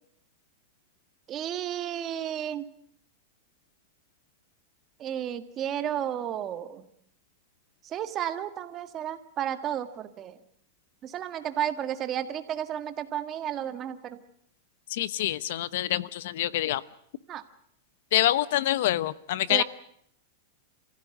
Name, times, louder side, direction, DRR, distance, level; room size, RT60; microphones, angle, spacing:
voice 1, 1.3-2.7 5.0-6.9 7.8-10.4 11.0-14.2 17.3-17.4 19.5-19.6, right 10 dB, 30° right, 10 dB, 1.8 m, -32 dB
voice 2, 14.9-16.8 18.1-19.6, left 14 dB, 65° left, 18 dB, 0.9 m, -26 dB
28.5 x 15.5 x 9.3 m, 0.70 s
supercardioid pair, 145°, 0 cm